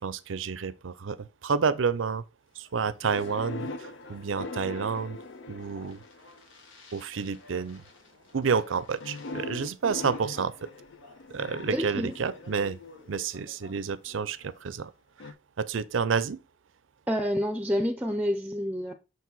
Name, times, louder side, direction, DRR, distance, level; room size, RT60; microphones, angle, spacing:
voice 1, 0.0-2.2 2.6-5.2 5.5-6.0 6.9-7.8 8.3-10.5 11.3-12.8 13.1-14.9 15.6-16.4, right 5 dB, 85° right, 0.5 m, -29 dB
Speech, 2.5-14.9, left 3 dB, 85° left, 2.1 m, -52 dB
sound 1, 3.0-6.4 7.1-7.6 9.0-13.1 15.2-15.3, left 2 dB, 70° left, 0.6 m, -40 dB
voice 2, 11.7-12.1 17.1-18.9, equal, 10° right, 0.5 m, -28 dB
6.6 x 4.7 x 3.9 m
head